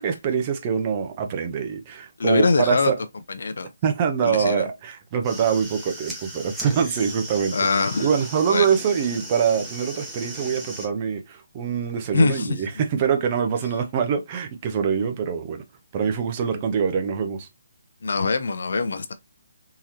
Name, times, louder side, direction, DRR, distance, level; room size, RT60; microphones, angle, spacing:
voice 1, 0.0-3.0 3.8-7.6 8.0-15.6 15.9-17.5, right 7 dB, 30° right, 0.6 m, -24 dB
voice 2, 2.2-2.9 3.3-3.7 4.2-4.7 7.5-8.1 8.5-8.7 12.1-12.6 18.0-19.1, left 4 dB, 65° left, 0.5 m, -23 dB
sound 1, 5.1-10.9, right 1 dB, 10° right, 1.0 m, -37 dB
3.7 x 3.0 x 2.8 m
figure-of-eight pair, 145°, 0 cm